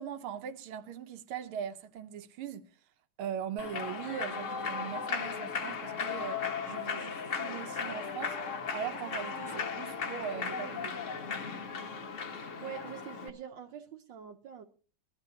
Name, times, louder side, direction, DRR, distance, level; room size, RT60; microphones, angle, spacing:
voice 1, 0.0-2.7 3.2-11.0, right 8 dB, 85° right, 1.7 m, -40 dB
Human voice / Clapping / Cheering, 3.6-13.3, left 5 dB, 45° left, 1.1 m, -36 dB
voice 2, 12.3-14.6, right 9 dB, 70° right, 1.4 m, -45 dB
20.5 x 12.5 x 2.8 m
omnidirectional pair, 2.3 m